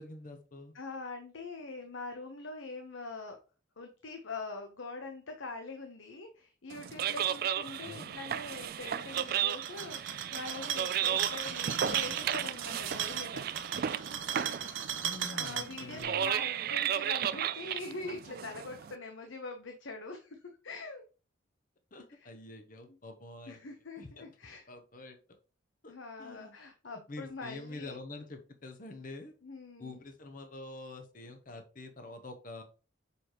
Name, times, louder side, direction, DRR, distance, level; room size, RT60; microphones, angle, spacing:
voice 1, 0.0-0.7 7.8-8.1 15.0-16.3 21.9-23.7 24.0-24.3 24.7-25.2 25.8-26.5 27.1-29.3 29.8-32.6, left 2 dB, 40° left, 6 dB, 0.8 m, -46 dB
voice 2, 0.7-3.4 3.8-13.7 15.3-21.0 22.1-22.3 23.5-24.7 25.9-28.0 29.4-30.0, left 3 dB, 70° left, 5 dB, 0.9 m, -43 dB
sound 1, 6.7-18.9, right 9 dB, 45° right, 0.3 m, -34 dB
sound 2, 9.0-16.0, right 8 dB, 70° right, 0.8 m, -37 dB
6.9 x 4.9 x 3.0 m, 0.34 s
head